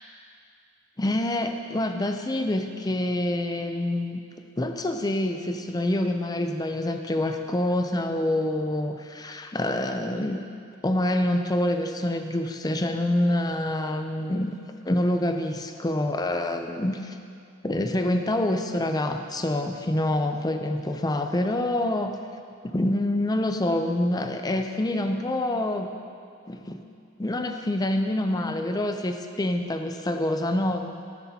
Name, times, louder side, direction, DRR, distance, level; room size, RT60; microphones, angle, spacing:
voice 1, 1.0-4.2 4.6-10.4 10.8-14.5 14.9-17.2 17.6-22.2 22.6-25.9 26.5-26.8 27.2-31.0, left 1 dB, 20° left, 6 dB, 0.5 m, -26 dB
13.0 x 10.0 x 2.8 m, 2.3 s
head